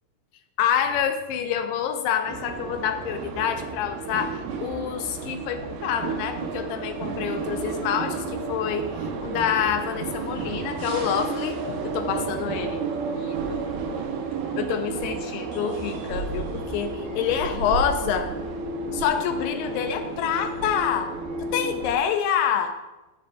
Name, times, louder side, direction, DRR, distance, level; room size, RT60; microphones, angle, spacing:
voice 1, 0.6-13.6 14.6-18.3 18.9-21.1 21.4-22.7, left 8 dB, 85° left, 7 dB, 2.7 m, -27 dB
sound 1, 2.2-21.9, right 4 dB, 75° right, 2.7 m, -32 dB
sound 2, 13.4-14.9 15.3-18.4, right 2 dB, 50° left, 2.2 m, -41 dB
12.5 x 8.4 x 2.3 m, 1.1 s
omnidirectional pair, 4.9 m